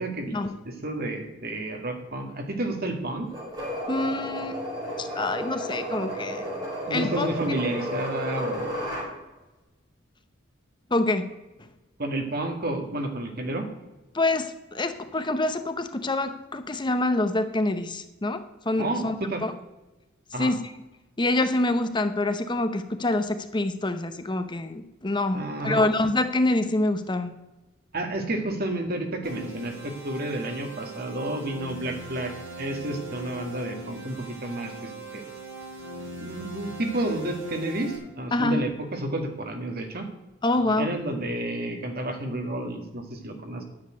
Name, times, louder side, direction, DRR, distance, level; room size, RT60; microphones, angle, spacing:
voice 1, 0.0-0.3 0.6-3.3 6.9-8.8 12.0-13.7 18.8-19.4 20.3-20.5 25.3-25.8 27.9-35.3 36.1-40.1 40.5-43.6, right 1 dB, 50° right, 4 dB, 2.0 m, -31 dB
sound 1, 3.3-9.1, equal, 25° right, 4.9 m, -32 dB
voice 2, 3.9-4.6 5.0-7.3 10.9-11.3 14.1-19.1 19.4-19.5 20.4-20.7 21.2-27.3 38.3-38.6 40.4-40.9, left 2 dB, 25° left, 9 dB, 0.8 m, -26 dB
sound 2, 29.2-38.0, right 2 dB, 70° right, 4.8 m, -40 dB
9.6 x 7.4 x 9.3 m, 1.1 s
head